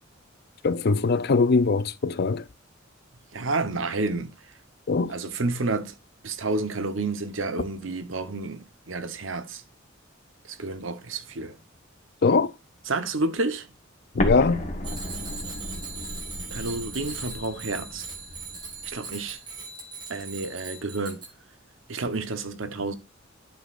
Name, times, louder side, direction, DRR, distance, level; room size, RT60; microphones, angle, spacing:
voice 1, 0.6-2.5 4.9-5.1 12.2-12.5 14.1-14.6, left 4 dB, 55° left, 0.5 m, -21 dB
voice 2, 3.3-4.3 5.1-6.0 6.2-9.6 10.4-11.6 12.9-13.7 16.5-18.1 18.8-19.4 20.1-21.2 21.9-22.9, right 3 dB, 75° right, 1.0 m, -30 dB
Explosion, 14.2-18.9, left 1 dB, 40° left, 1.4 m, -33 dB
Bicycle bell, 14.8-21.3, right 4 dB, 25° right, 1.9 m, -39 dB
10.5 x 6.3 x 2.5 m
head